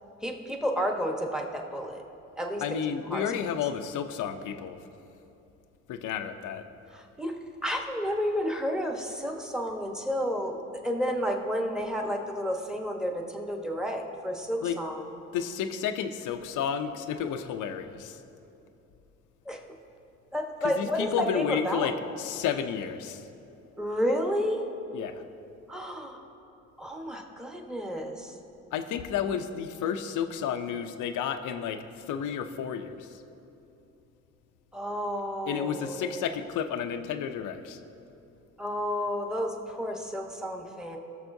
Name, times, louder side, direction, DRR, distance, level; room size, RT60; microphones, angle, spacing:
voice 1, 0.2-2.0 2.4-2.8 3.1-3.2 6.9-7.4 7.6-15.1 19.4-19.6 20.3-22.0 23.8-24.6 25.7-26.2 26.8-28.4 34.7-36.3 38.6-41.0, equal, ahead, 2 dB, 1.1 m, -31 dB
voice 2, 2.6-4.8 5.9-6.7 14.6-14.8 15.3-18.2 20.8-21.9 22.2-23.2 24.9-25.1 28.7-33.2 35.5-37.8, left 8 dB, 80° left, 8 dB, 0.6 m, -31 dB
18.5 x 6.7 x 2.7 m, 2.8 s
cardioid pair, 90°, 30 cm